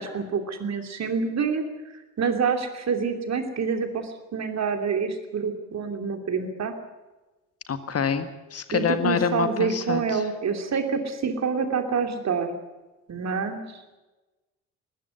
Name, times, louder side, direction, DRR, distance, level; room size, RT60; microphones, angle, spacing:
voice 1, 0.0-1.6 2.2-6.7 8.7-12.6 13.1-13.6, right 5 dB, 40° right, 6 dB, 2.9 m, -27 dB
voice 2, 7.7-10.2, left 6 dB, 35° left, 10 dB, 1.7 m, -26 dB
21.0 x 15.5 x 9.4 m, 1.1 s
figure-of-eight pair, 45°, 40 cm